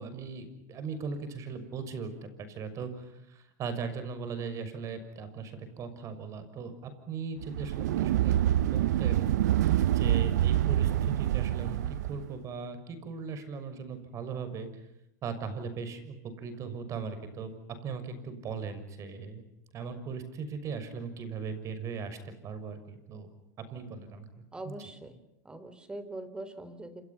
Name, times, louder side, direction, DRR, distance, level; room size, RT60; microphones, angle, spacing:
voice 1, 0.0-9.3 9.9-14.7 15.2-17.5 17.8-19.4 19.7-23.3 23.7-24.3 24.6-24.8, right 5 dB, 35° right, 10 dB, 6.3 m, -38 dB
sound 1, 7.4-12.3, right 12 dB, 85° right, 0.9 m, -26 dB
voice 2, 24.5-25.2 25.5-27.0, right 2 dB, 10° right, 12 dB, 3.6 m, -42 dB
29.5 x 27.0 x 5.8 m, 0.85 s
supercardioid pair, 125°, 9 cm